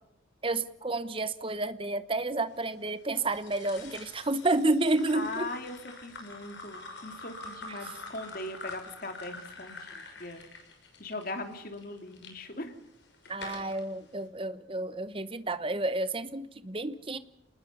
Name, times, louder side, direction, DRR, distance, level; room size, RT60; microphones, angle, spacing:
voice 1, 0.4-5.5 7.7-7.8 13.3-17.2, right 2 dB, 25° right, 1.0 m, -30 dB
sound 1, 3.1-12.3 12.9-13.8, left 3 dB, 60° left, 6.2 m, -46 dB
voice 2, 5.1-5.8 6.0-10.4 11.0-12.7, left 2 dB, 45° left, 3.1 m, -40 dB
28.0 x 20.5 x 5.5 m
head